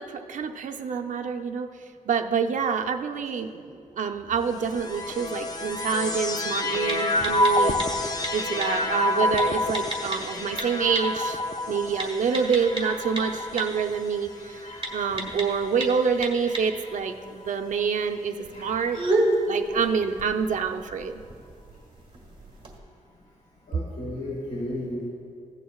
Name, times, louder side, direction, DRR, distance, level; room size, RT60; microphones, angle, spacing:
voice 1, 0.0-1.7 2.1-7.8 8.3-11.4 11.7-19.0 19.5-21.2, right 6 dB, 70° right, 5 dB, 0.6 m, -27 dB
sound 1, 4.5-16.0 16.7-17.5, left 2 dB, 30° left, 0.6 m, -29 dB
sound 2, 4.5-22.8, right 1 dB, 40° right, 1.6 m, -34 dB
voice 2, 23.7-25.1, left 1 dB, 85° left, -3 dB, 1.5 m, -34 dB
15.5 x 9.9 x 2.3 m, 2.3 s
wide cardioid pair, 135°, 14 cm